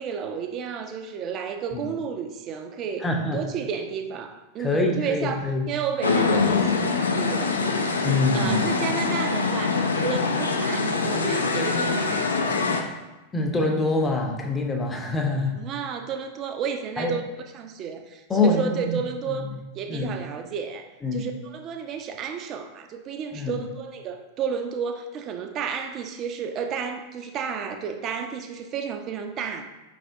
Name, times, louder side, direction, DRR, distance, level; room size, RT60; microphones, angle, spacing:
voice 1, 0.0-12.9 15.5-17.2 17.5-19.5 19.7-29.6, right 6 dB, 35° right, 6 dB, 0.4 m, -32 dB
voice 2, 3.0-3.4 4.6-5.7 8.0-8.6 13.3-15.6 17.0-17.1 18.3-19.0 19.3-19.6 19.9-20.2 21.0-21.3 23.3-23.5, left 2 dB, 15° left, 2 dB, 0.6 m, -25 dB
sound 1, 6.0-12.8, left 4 dB, 75° left, 0.4 m, -24 dB
5.4 x 3.3 x 2.6 m, 1.1 s
figure-of-eight pair, 90°, 0 cm